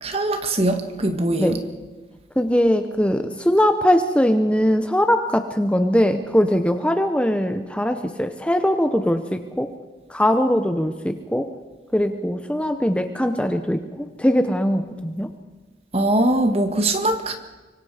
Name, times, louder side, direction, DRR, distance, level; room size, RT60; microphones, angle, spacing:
voice 1, 0.0-1.6 15.9-17.4, right 1 dB, 35° right, 1.9 m, -21 dB
voice 2, 2.4-9.7 10.1-11.5 11.9-15.3, equal, 5° left, 0.8 m, -21 dB
25.0 x 24.0 x 5.0 m
head